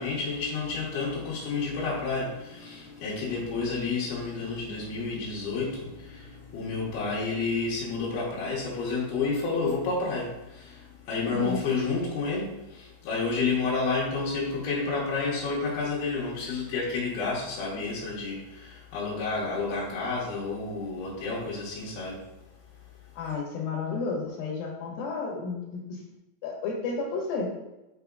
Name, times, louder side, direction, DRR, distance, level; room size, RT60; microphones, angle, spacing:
voice 1, 0.0-22.3, left 4 dB, 90° left, -6 dB, 3.2 m, -30 dB
voice 2, 11.3-11.6 23.2-26.0 26.4-27.5, left 4 dB, 75° left, -1 dB, 2.9 m, -32 dB
8.3 x 4.9 x 2.3 m, 0.95 s
omnidirectional pair, 4.3 m